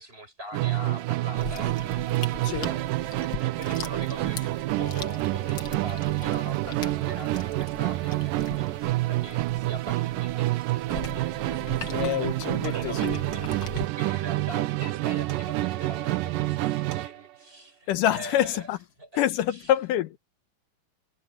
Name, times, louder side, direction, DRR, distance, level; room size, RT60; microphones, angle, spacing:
voice 1, 0.0-3.1 3.4-4.5 4.8-12.3 12.6-18.7 19.0-19.7, right 1 dB, 15° right, 6.4 m, -43 dB
Musical instrument, 0.5-17.2, right 17 dB, 85° right, 2.4 m, -28 dB
sound 1, 1.4-13.9, left 5 dB, 40° left, 1.9 m, -41 dB
sound 2, 11.0-11.2 12.6-12.8 13.3-13.7 15.3-15.4 16.9-17.0, right 5 dB, 40° right, 3.3 m, -46 dB
voice 2, 11.9-13.2 17.9-18.8 19.2-20.2, left 11 dB, 80° left, 2.5 m, -26 dB
omnidirectional pair, 3.8 m